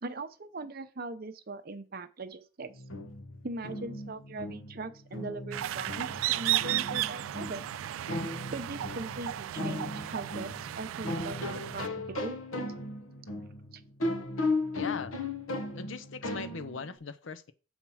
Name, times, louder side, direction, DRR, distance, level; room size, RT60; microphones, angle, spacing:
voice 1, 0.0-2.8 3.4-7.7 8.5-12.4 13.7-13.8, right 3 dB, 50° right, 0.7 m, -40 dB
sound 1, 2.7-16.9, left 2 dB, 85° left, 1.2 m, -37 dB
sound 2, 5.5-11.9, right 13 dB, 85° right, 0.3 m, -34 dB
voice 2, 14.7-15.2 15.8-17.5, left 5 dB, 70° left, 0.6 m, -39 dB
7.2 x 4.4 x 5.6 m
head